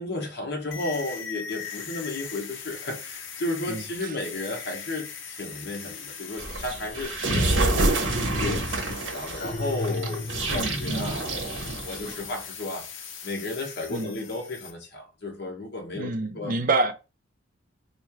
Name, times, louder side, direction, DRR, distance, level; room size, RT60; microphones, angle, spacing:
voice 1, 0.0-7.7 8.0-11.3 11.8-12.9 13.2-16.5, left 2 dB, 60° left, 1.1 m, -33 dB
sound 1, 0.7-14.7, left 7 dB, 85° left, 0.6 m, -40 dB
voice 2, 3.7-4.1 10.5-11.1 13.9-14.1 15.9-16.9, right 3 dB, 45° right, 0.5 m, -28 dB
sound 2, 6.4-12.3, right 2 dB, 90° right, 1.1 m, -27 dB
sound 3, 9.4-10.9, left 2 dB, 40° left, 0.3 m, -33 dB
3.3 x 2.3 x 4.3 m
head